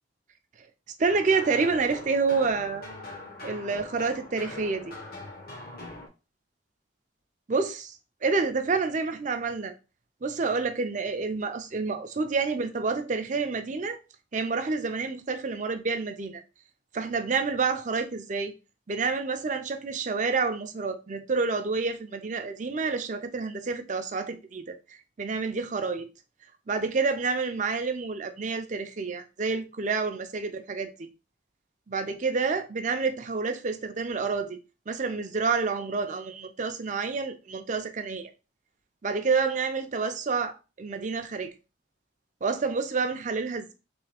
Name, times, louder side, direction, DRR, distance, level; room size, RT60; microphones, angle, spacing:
voice 1, 1.0-2.9 3.4-4.9 7.5-8.0 8.2-9.7 10.2-14.0 14.3-16.4 16.9-18.5 18.9-24.8 25.2-26.1 26.7-31.1 31.9-34.6 34.9-38.3 39.0-41.5 42.4-43.7, right 4 dB, 40° right, 0.5 m, -28 dB
sound 1, 1.1-6.1, left 2 dB, 50° left, 1.0 m, -42 dB
3.4 x 3.1 x 3.4 m
head